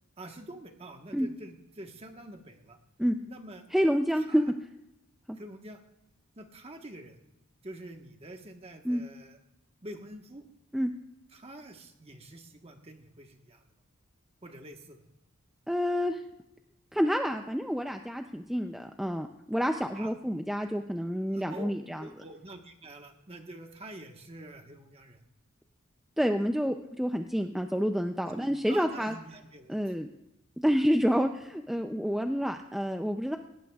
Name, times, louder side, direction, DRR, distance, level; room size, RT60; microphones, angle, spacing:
voice 1, 0.2-2.8 3.3-3.6 4.1-4.5 5.3-5.8 6.4-7.2 7.6-9.4 9.8-10.4 11.3-13.6 14.4-15.0 20.0-20.1 21.3-21.7 22.0-25.2 28.3-29.8, right 1 dB, 30° right, 4 dB, 1.3 m, -46 dB
voice 2, 3.7-4.4 5.3-5.4 8.8-9.0 10.7-10.9 15.7-16.2 16.9-22.0 26.2-29.2 29.7-30.1 30.6-33.4, equal, ahead, 5 dB, 0.4 m, -28 dB
17.5 x 17.5 x 2.4 m, 0.89 s
head